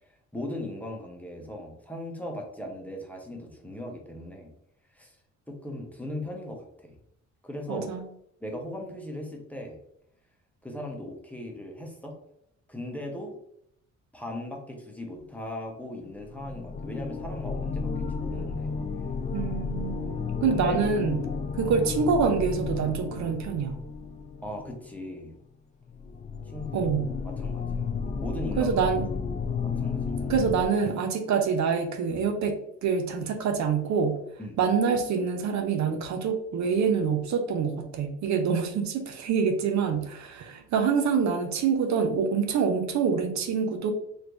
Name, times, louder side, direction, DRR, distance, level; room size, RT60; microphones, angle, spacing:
voice 1, 0.3-4.5 4.9-5.2 5.5-7.0 7.4-7.9 8.4-9.8 10.6-12.2 12.7-13.4 14.1-18.7 20.5-20.8 21.0-21.4 24.4-25.3 26.5-26.8 27.2-27.9 28.2-28.8 29.6-30.3 34.4-34.6, left 1 dB, 5° left, 1 dB, 0.8 m, -38 dB
voice 2, 7.7-8.1 19.3-21.2 21.6-23.8 26.7-27.1 28.6-29.1 30.3-34.2 34.6-43.9, right 6 dB, 65° right, 5 dB, 0.6 m, -26 dB
sound 1, 15.2-15.3 16.1-25.1 25.9-30.7, left 5 dB, 25° left, 0.3 m, -32 dB
3.3 x 2.6 x 3.0 m, 0.73 s
cardioid pair, 90°, 30 cm